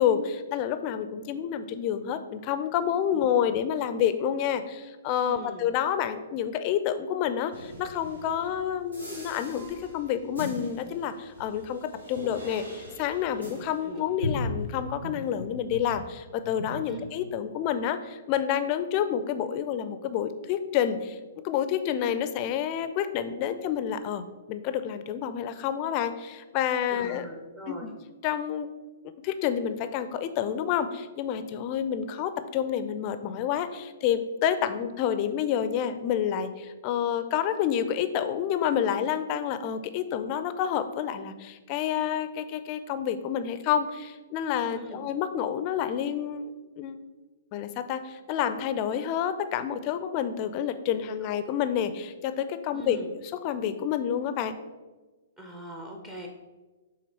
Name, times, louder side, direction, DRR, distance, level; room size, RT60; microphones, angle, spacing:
voice 1, 0.0-21.2 21.4-27.3 27.7-27.9 28.2-28.7 29.2-46.5 46.8-47.0 47.5-54.5, left 9 dB, 35° left, 11 dB, 0.4 m, -29 dB
voice 2, 5.3-5.7 13.8-14.1 16.8-17.0 26.9-27.9 44.7-45.0 51.2-51.3 52.7-53.1 55.4-56.3, right 1 dB, 15° right, 1 dB, 0.6 m, -41 dB
sound 1, 7.5-16.1 16.4-17.6, left 1 dB, 85° right, 1.9 m, -39 dB
6.0 x 3.9 x 4.3 m, 1.2 s
figure-of-eight pair, 115°, 0 cm